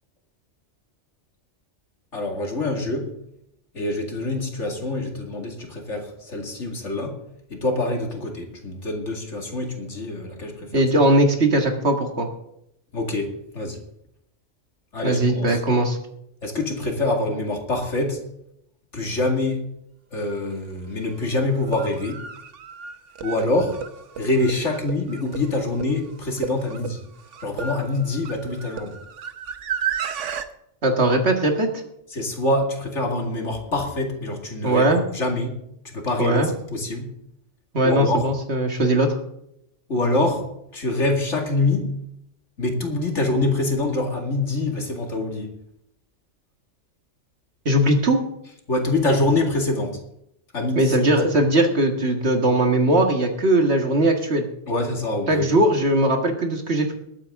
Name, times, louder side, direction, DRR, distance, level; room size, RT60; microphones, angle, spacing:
voice 1, 2.1-3.1 3.7-7.2 7.5-10.7 12.9-13.8 14.9-15.6 16.4-18.2 18.9-19.7 20.1-22.2 23.2-23.8 24.2-27.0 27.4-29.0 32.1-35.6 35.8-36.4 36.7-37.1 37.8-38.2 39.9-41.9 42.6-45.5 48.7-50.0 50.5-51.1 54.7-55.4, left 2 dB, 75° left, 2 dB, 2.6 m, -25 dB
voice 2, 10.7-12.3 15.0-16.0 30.8-31.7 34.6-35.0 36.2-36.5 37.7-39.2 47.7-48.2 50.8-54.5 55.3-56.9, right 1 dB, 60° right, 4 dB, 2.0 m, -19 dB
sound 1, 20.4-20.5 21.5-30.5, right 8 dB, 80° right, 1.3 m, -33 dB
21.0 x 8.8 x 3.7 m, 0.78 s
omnidirectional pair, 1.2 m